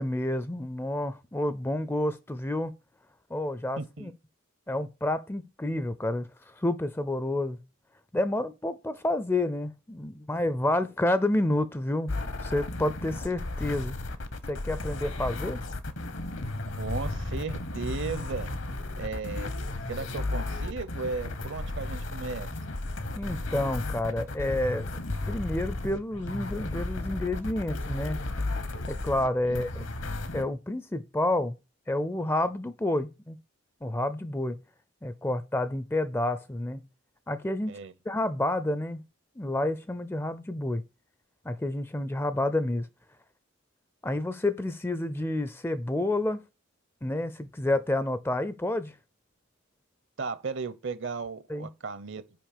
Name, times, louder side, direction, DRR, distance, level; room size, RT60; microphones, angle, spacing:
voice 1, 0.0-2.7 3.3-4.1 4.7-7.6 8.1-14.0 14.5-15.6 23.2-28.2 28.9-29.8 30.3-31.6 31.9-33.4 33.8-34.6 35.0-36.8 37.3-37.8 38.1-39.0 39.4-40.8 41.4-42.9 44.0-46.4 47.0-49.0 51.5-51.7, left 1 dB, 10° left, 0.4 m, -29 dB
voice 2, 3.8-4.1 16.8-18.5 19.0-19.5 19.9-22.5 29.5-29.6 37.7-37.9 50.2-52.4, right 4 dB, 60° right, 0.7 m, -35 dB
sound 1, 12.1-30.4, left 2 dB, 60° left, 0.9 m, -34 dB
6.1 x 5.0 x 6.6 m
head